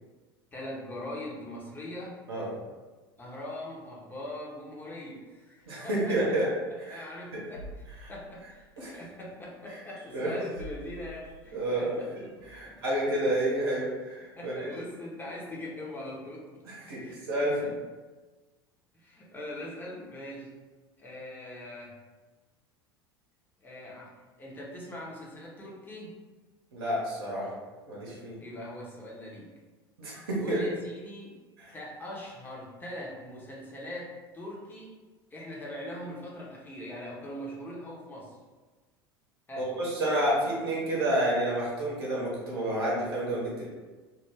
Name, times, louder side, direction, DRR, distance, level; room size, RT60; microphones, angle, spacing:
voice 1, 0.5-2.2 3.2-6.2 6.7-7.8 8.1-12.1 12.4-12.8 14.3-16.7 17.0-17.2 17.6-17.8 18.9-20.5 21.0-22.0 23.6-26.2 28.4-29.6 30.4-31.4 31.7-35.0 35.3-38.4 39.5-39.7, left 1 dB, 15° left, -4 dB, 0.7 m, -41 dB
sound 1, 5.6-5.7 6.4-6.5 7.5-9.2 9.7-12.8 13.6-13.7, equal, 85° left, 0.7 m, -48 dB
voice 2, 5.7-6.5 6.8-7.0 7.3-7.4 8.8-9.0 10.1-10.3 11.5-11.9 12.5-14.7 16.7-17.6 26.7-27.5 27.9-28.4 30.0-30.6 31.7-31.8 39.6-43.7, right 1 dB, 65° right, -5 dB, 0.8 m, -29 dB
2.3 x 2.0 x 3.2 m, 1.3 s
figure-of-eight pair, 75°, 13 cm